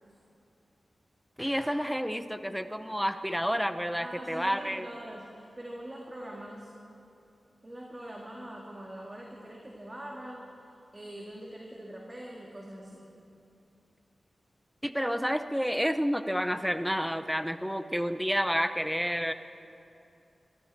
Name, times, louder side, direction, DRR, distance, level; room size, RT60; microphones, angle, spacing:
voice 1, 1.4-4.9 14.8-19.3, equal, ahead, 10 dB, 0.7 m, -30 dB
voice 2, 4.0-6.7 7.6-10.5 10.9-13.1, right 1 dB, 25° right, -2 dB, 1.8 m, -43 dB
24.0 x 13.0 x 4.1 m, 2.7 s
wide cardioid pair, 80°, 0 cm